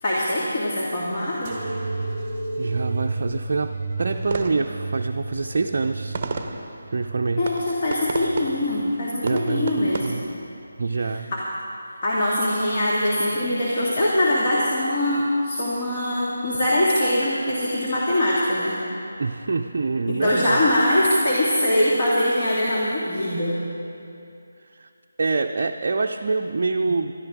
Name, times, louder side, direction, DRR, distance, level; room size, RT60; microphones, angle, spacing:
voice 1, 0.0-1.6 7.4-10.2 11.3-11.4 12.0-18.8 20.1-23.6, left 1 dB, 35° left, -7 dB, 2.0 m, -22 dB
sound 1, 1.4-8.7 9.2-10.0 10.7-11.2 12.2-12.3, right 2 dB, 15° right, 2.6 m, -32 dB
voice 2, 2.6-6.2 6.9-7.5 9.2-10.2 10.8-11.3 19.2-20.6 24.7-24.9 25.2-27.1, right 4 dB, 50° right, 3 dB, 0.5 m, -25 dB
sound 2, 4.1-10.9, right 4 dB, 35° right, 0.9 m, -35 dB
20.5 x 12.5 x 3.6 m, 2.6 s
figure-of-eight pair, 160°, 0 cm